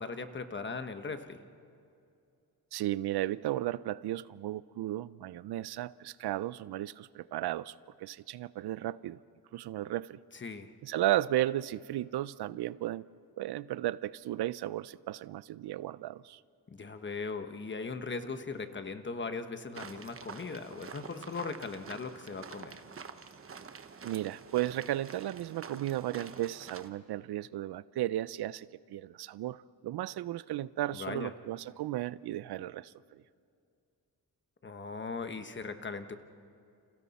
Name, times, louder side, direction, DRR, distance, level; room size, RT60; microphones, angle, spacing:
voice 1, 0.0-1.4 10.3-10.7 16.7-22.8 30.9-31.3 34.6-36.2, left 4 dB, 30° left, 1.1 m, -39 dB
voice 2, 2.7-9.2 9.5-10.2 10.8-13.0 13.4-16.4 24.0-33.2, right 14 dB, 80° right, 0.5 m, -34 dB
sound 1, 19.7-26.9, right 5 dB, 35° right, 1.0 m, -47 dB
29.5 x 28.0 x 4.2 m
wide cardioid pair, 135°, 39 cm